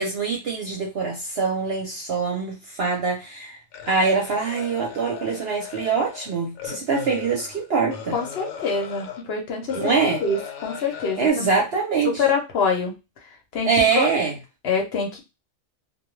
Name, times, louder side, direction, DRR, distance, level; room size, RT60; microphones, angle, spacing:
voice 1, 0.0-3.6 3.9-8.2 9.7-10.2 11.2-12.2 13.6-14.4, right 5 dB, 55° right, -1 dB, 0.8 m, -24 dB
sound 1, 3.7-9.2 9.7-11.3, left 8 dB, 80° left, 1.1 m, -36 dB
voice 2, 8.1-9.8 10.0-11.6 12.0-12.9 13.5-14.1 14.6-15.2, left 5 dB, 55° left, 2 dB, 0.9 m, -25 dB
2.3 x 2.2 x 3.0 m, 0.25 s
omnidirectional pair, 1.4 m